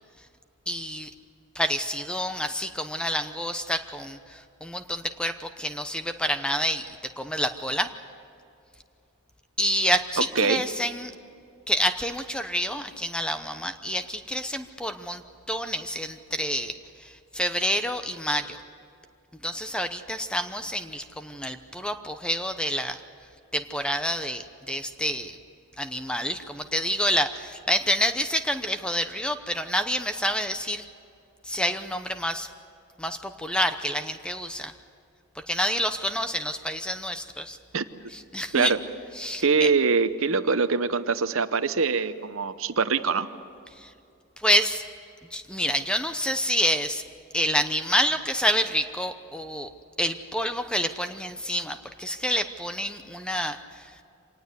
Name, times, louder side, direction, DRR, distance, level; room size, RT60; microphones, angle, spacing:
voice 1, 0.7-1.1 1.5-6.9 7.2-7.9 9.6-11.1 11.7-15.2 15.5-16.7 17.0-18.6 19.4-23.0 23.5-25.4 25.8-30.9 31.4-32.5 33.0-34.7 35.5-37.6 38.1-38.7 39.2-39.7 43.8-43.9 44.4-44.8 45.3-47.0 47.3-49.7 50.0-53.9, equal, 5° left, 8 dB, 0.8 m, -28 dB
voice 2, 39.4-43.3, right 5 dB, 65° right, 11 dB, 0.9 m, -23 dB
25.5 x 19.0 x 8.2 m, 2.5 s
head